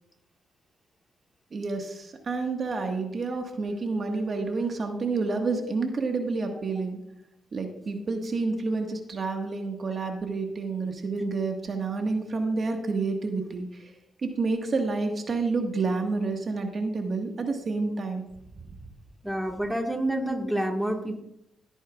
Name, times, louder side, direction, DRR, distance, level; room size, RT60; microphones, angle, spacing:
voice 1, 1.5-7.0 7.5-13.9 14.2-18.2, right 3 dB, 50° right, 4 dB, 1.5 m, -29 dB
voice 2, 19.2-21.2, right 1 dB, 5° right, 2 dB, 1.7 m, -28 dB
17.0 x 9.0 x 2.4 m, 0.81 s
cardioid pair, 75°, 0 cm